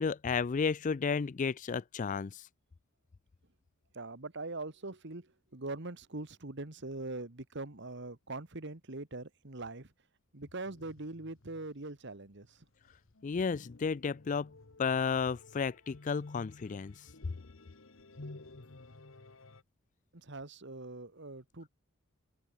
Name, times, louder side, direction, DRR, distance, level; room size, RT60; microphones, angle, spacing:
voice 1, 0.0-2.3 13.2-14.5 14.8-16.9, left 5 dB, 35° left, 0.4 m, -32 dB
voice 2, 3.9-9.9 10.3-12.7 20.1-21.7, right 2 dB, 55° right, 1.8 m, -42 dB
sound 1, 10.6-19.6, left 2 dB, 65° left, 1.3 m, -54 dB
head